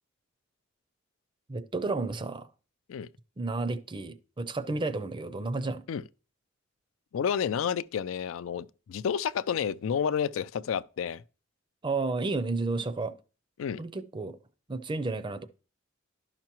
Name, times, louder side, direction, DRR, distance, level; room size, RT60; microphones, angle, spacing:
voice 1, 1.5-2.5 3.4-5.8 11.8-13.1 13.8-14.4 14.7-15.5, right 3 dB, 25° right, 0.5 m, -32 dB
voice 2, 7.1-11.2 13.6-13.8, left 7 dB, 80° left, 0.4 m, -30 dB
11.5 x 5.9 x 3.0 m
head